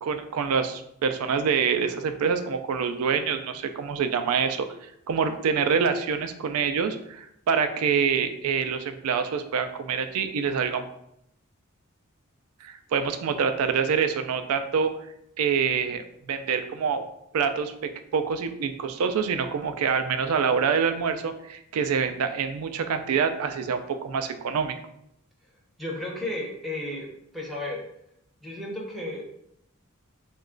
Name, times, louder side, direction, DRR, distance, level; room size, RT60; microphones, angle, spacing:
voice 1, 0.0-10.8 12.6-14.9 15.4-17.0 17.3-24.8, right 6 dB, 80° right, 9 dB, 0.4 m, -26 dB
voice 2, 25.8-27.1 27.3-27.9 28.4-29.2, left 1 dB, ahead, -4 dB, 0.5 m, -33 dB
3.0 x 2.3 x 3.7 m, 0.76 s
head